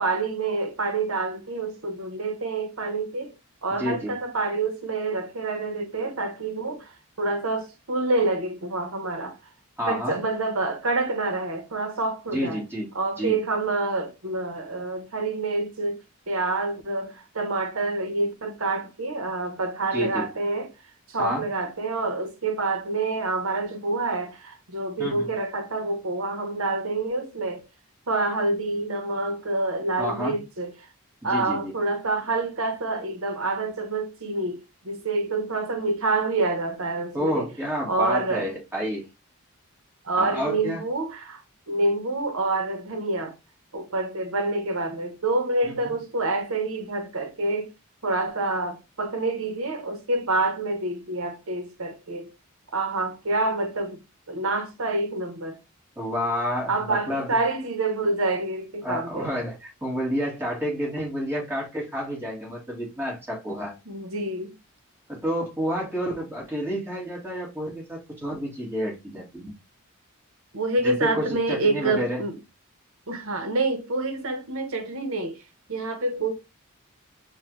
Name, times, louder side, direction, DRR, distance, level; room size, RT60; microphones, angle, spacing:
voice 1, 0.0-3.3 3.6-9.4 9.9-12.6 12.9-16.0 16.3-20.7 21.1-27.6 28.1-30.7 31.2-37.5 37.9-38.5 40.0-41.4 41.7-43.3 43.7-47.7 48.0-52.3 52.7-54.0 54.3-55.6 56.7-59.3 63.9-64.6 70.5-72.4 73.1-75.4 75.7-76.3, right 2 dB, 70° right, 1.1 m, -27 dB
voice 2, 3.8-4.1 9.8-10.2 12.3-12.9 13.2-13.4 19.9-20.3 21.2-21.4 25.0-25.3 30.0-30.4 31.3-31.7 37.1-39.1 40.2-40.8 45.6-45.9 56.0-57.4 58.8-63.8 65.1-69.5 70.8-72.2, equal, 10° right, 2.1 m, -29 dB
4.5 x 2.5 x 3.1 m
head